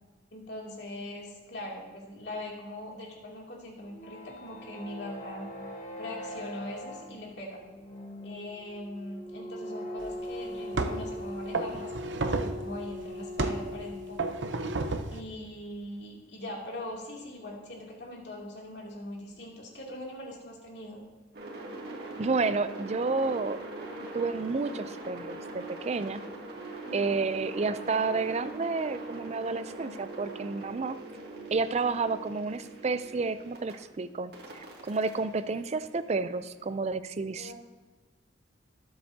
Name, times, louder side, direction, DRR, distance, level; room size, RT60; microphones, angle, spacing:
voice 1, 0.3-5.5 6.0-7.6 8.2-14.3 15.1-21.0 26.8-27.2 37.3-37.5, left 1 dB, 65° left, -3 dB, 2.7 m, -41 dB
sound 1, 3.8-15.0, left 1 dB, 40° left, 1.6 m, -41 dB
sound 2, 10.0-10.1 10.7-11.1 11.5-12.6 13.4-13.7 14.2-15.2, right 3 dB, 80° right, 0.7 m, -31 dB
sound 3, 21.3-33.7 34.3-36.4, right 2 dB, 60° right, 2.3 m, -42 dB
voice 2, 22.2-23.6 24.1-26.2 26.9-31.0 31.5-37.5, right 4 dB, 35° right, 13 dB, 0.4 m, -30 dB
19.0 x 7.9 x 2.8 m, 1.3 s
head